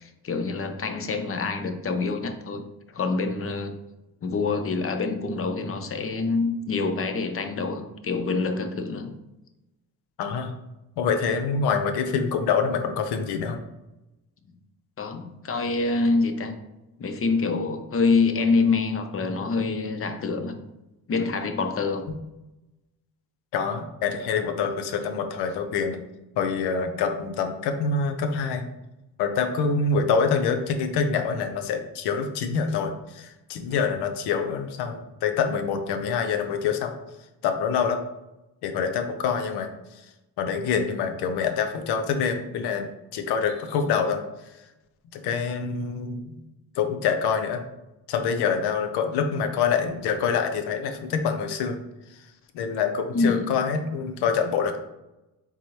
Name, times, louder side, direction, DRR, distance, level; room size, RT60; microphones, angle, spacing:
voice 1, 0.0-2.6 2.9-3.7 4.2-9.1 15.0-16.6 17.0-20.6 21.1-22.1 53.1-53.5, left 4 dB, 35° left, 7 dB, 0.6 m, -26 dB
voice 2, 10.2-10.5 11.0-13.6 23.5-26.0 26.4-28.6 29.2-36.9 37.4-38.0 38.6-39.7 40.4-42.9 43.1-44.2 45.1-46.4 46.8-47.6 48.1-51.8 52.5-54.8, left 6 dB, 90° left, 7 dB, 0.7 m, -26 dB
4.1 x 3.8 x 3.1 m, 0.95 s
cardioid pair, 85°, 38 cm